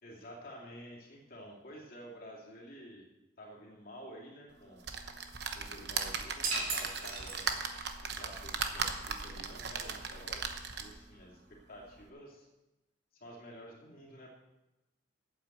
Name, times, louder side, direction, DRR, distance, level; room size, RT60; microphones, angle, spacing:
voice 1, 0.0-3.0 3.4-4.8 5.5-7.5 8.0-12.5 13.1-14.3, equal, 45° left, -3 dB, 2.6 m, -50 dB
sound 1, 4.8-11.1 11.6-11.7 12.0-12.1, right 5 dB, 55° right, 1.0 m, -38 dB
sound 2, 6.4-7.9, right 3 dB, 85° right, 2.7 m, -36 dB
8.8 x 8.2 x 7.8 m, 1.0 s
head